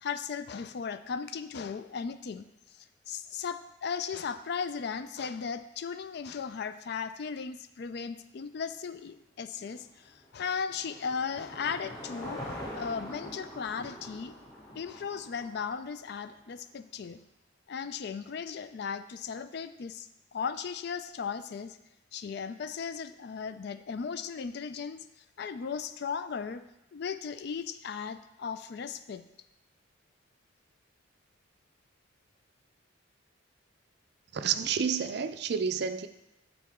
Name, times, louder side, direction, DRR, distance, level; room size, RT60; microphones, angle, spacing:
voice 1, 0.0-2.5 2.7-12.4 12.7-14.4 14.7-17.2 17.7-21.8 22.1-25.1 25.4-26.6 26.9-29.2, left 6 dB, 55° left, 11 dB, 0.4 m, -36 dB
Car passing by / Engine, 9.8-16.2, left 1 dB, 20° left, 2.2 m, -44 dB
voice 2, 34.3-36.1, right 6 dB, 55° right, 10 dB, 0.4 m, -30 dB
12.0 x 4.0 x 3.6 m, 0.88 s
head